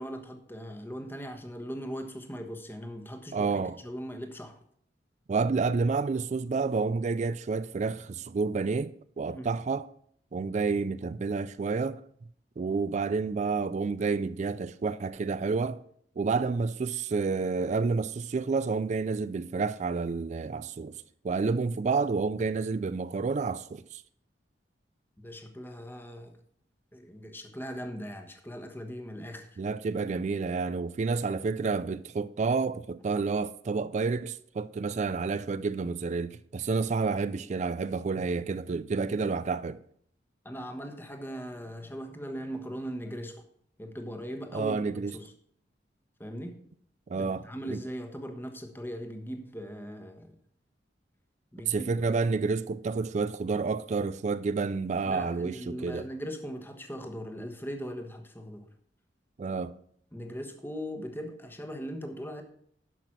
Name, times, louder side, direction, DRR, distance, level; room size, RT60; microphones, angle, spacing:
voice 1, 0.0-3.5 3.8-4.6 9.3-9.5 25.2-26.3 26.9-29.6 40.4-43.4 43.8-44.8 45.1-45.3 46.2-46.6 47.1-50.3 51.5-51.9 55.0-58.7 60.1-62.4, equal, 10° left, 1.2 m, -39 dB
voice 2, 3.3-3.8 5.3-9.9 10.3-12.0 12.6-15.8 16.2-21.0 21.2-24.0 29.6-39.8 44.5-45.2 47.1-47.8 51.7-56.1 59.4-59.8, right 4 dB, 40° right, 0.3 m, -29 dB
11.0 x 5.9 x 6.0 m
head